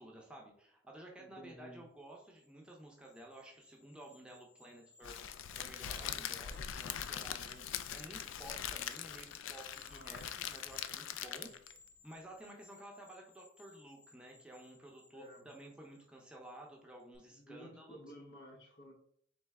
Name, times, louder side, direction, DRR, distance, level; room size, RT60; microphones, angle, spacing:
voice 1, 0.0-11.5 12.0-18.0, right 1 dB, 5° right, -1 dB, 0.6 m, -53 dB
voice 2, 1.2-1.8 6.0-6.4 9.8-10.3 11.2-11.5 15.1-15.5 17.3-18.9, equal, 60° left, 3 dB, 0.8 m, -54 dB
sound 1, 2.0-16.7 17.0-17.2, left 3 dB, 25° left, 0.9 m, -63 dB
Crackle, 5.0-11.8, left 9 dB, 80° left, 0.3 m, -42 dB
3.8 x 3.2 x 3.4 m, 0.65 s
head